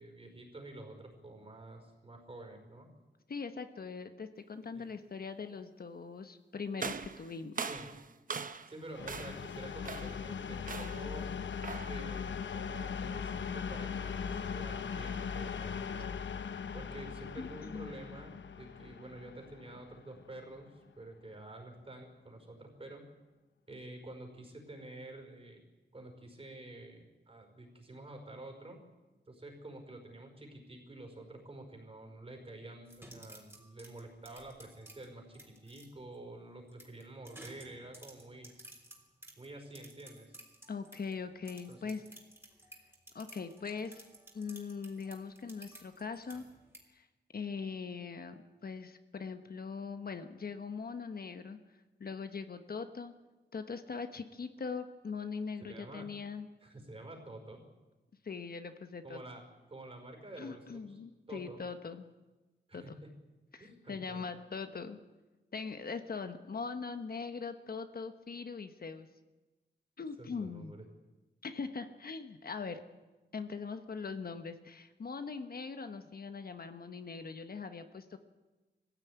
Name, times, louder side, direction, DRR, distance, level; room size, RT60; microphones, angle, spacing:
voice 1, 0.0-2.9 4.7-4.8 7.6-7.9 8.7-11.3 11.8-16.1 16.7-18.3 18.6-23.0 23.7-25.6 25.9-28.8 29.3-38.5 39.4-40.4 41.7-41.8 55.6-56.1 56.6-57.6 59.0-61.0 61.3-61.6 62.7-62.9 63.6-64.2 70.2-70.8, right 2 dB, 30° right, 3 dB, 5.1 m, -49 dB
voice 2, 3.3-7.5 17.4-17.9 40.7-42.0 43.1-44.0 44.3-46.4 46.9-47.1 47.3-51.6 52.0-53.1 53.5-56.5 58.2-59.2 60.4-62.1 62.7-62.8 63.5-65.0 65.5-69.1 70.0-70.8 71.4-72.8 73.3-78.2, left 5 dB, 55° left, 9 dB, 1.2 m, -41 dB
sound 1, 6.8-8.8 9.1-9.5 9.8-10.2 10.7-11.1 11.6-12.0, right 5 dB, 50° right, 0.9 m, -41 dB
sound 2, 8.9-20.6, left 6 dB, 85° left, 1.0 m, -39 dB
sound 3, 32.9-35.9 36.7-41.2 41.5-46.8, right 1 dB, 15° right, 3.6 m, -55 dB
21.5 x 15.5 x 9.4 m, 1.2 s
wide cardioid pair, 130°, 19 cm